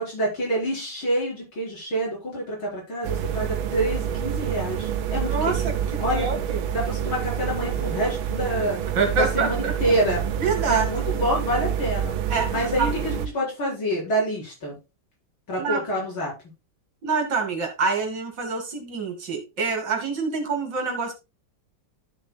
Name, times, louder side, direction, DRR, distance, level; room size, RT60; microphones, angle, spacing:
voice 1, 0.0-5.6 6.0-6.3 6.7-8.8 9.2-10.2 10.6-12.1 12.5-14.7 15.5-16.3, right 1 dB, 90° left, 5.3 m, -27 dB
sound 1, 3.0-13.3, right 9 dB, 85° right, 1.6 m, -27 dB
voice 2, 5.2-6.6 8.9-9.9 10.4-11.1 12.3-12.9 15.6-15.8 17.0-21.1, right 4 dB, 65° right, 2.8 m, -26 dB
13.0 x 7.0 x 2.2 m
omnidirectional pair, 2.2 m